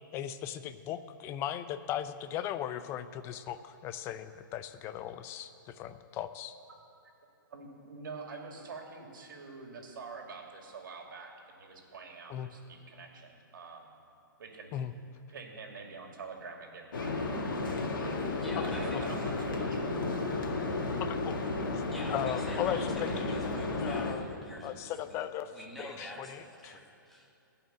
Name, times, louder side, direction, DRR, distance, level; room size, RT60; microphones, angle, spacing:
voice 1, 0.1-6.5 12.3-12.5 14.7-14.9 18.6-19.0 21.0-21.4 21.7-21.8 22.1-23.5 23.8-25.5 25.8-26.8, left 11 dB, 25° left, 11 dB, 0.5 m, -37 dB
voice 2, 7.5-14.0 14.4-14.7 15.3-17.7 18.5-20.0, right 4 dB, 70° right, 1 dB, 2.5 m, -46 dB
sound 1, 16.9-24.1, left 3 dB, 70° left, 1.9 m, -33 dB
voice 3, 18.4-19.6 21.9-25.2 25.5-27.3, equal, ahead, -4 dB, 1.8 m, -46 dB
15.0 x 5.7 x 9.2 m, 2.6 s
hypercardioid pair, 140°, 11 cm